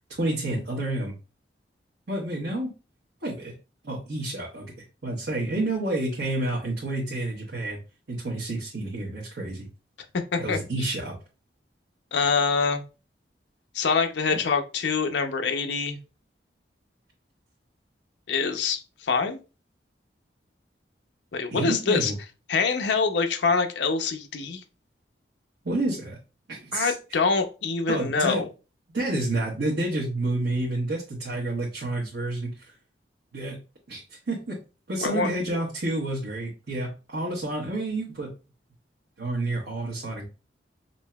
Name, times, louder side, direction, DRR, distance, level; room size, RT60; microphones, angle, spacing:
voice 1, 0.2-1.1 2.1-2.7 3.2-3.5 3.8-7.8 8.1-9.7 10.4-11.1 21.5-22.2 25.6-26.2 26.5-26.9 27.9-28.4 28.9-32.7 33.3-33.6 33.9-34.6 34.9-38.3 39.2-40.3, right 2 dB, 90° right, -5 dB, 1.1 m, -29 dB
voice 2, 10.3-10.9 12.1-12.8 13.7-16.0 18.3-19.4 21.3-22.1 22.5-24.6 26.7-28.5 35.0-35.6, left 5 dB, 75° left, 6 dB, 0.5 m, -25 dB
5.2 x 2.7 x 2.2 m, 0.32 s
head